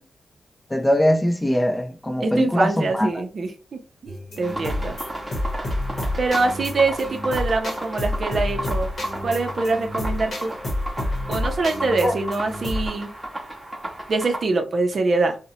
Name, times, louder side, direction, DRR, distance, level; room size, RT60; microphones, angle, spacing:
voice 1, 0.7-3.1 12.0-12.1, equal, 10° left, 0.4 m, -21 dB
voice 2, 2.2-5.0 6.2-8.9 9.2-10.5 11.3-13.1 14.1-15.4, right 3 dB, 55° right, 0.5 m, -24 dB
sound 1, 4.1-12.9, left 1 dB, 50° left, 0.8 m, -29 dB
sound 2, 4.4-14.4, right 1 dB, 10° right, 0.8 m, -34 dB
2.7 x 2.0 x 2.7 m
wide cardioid pair, 100°, 0 cm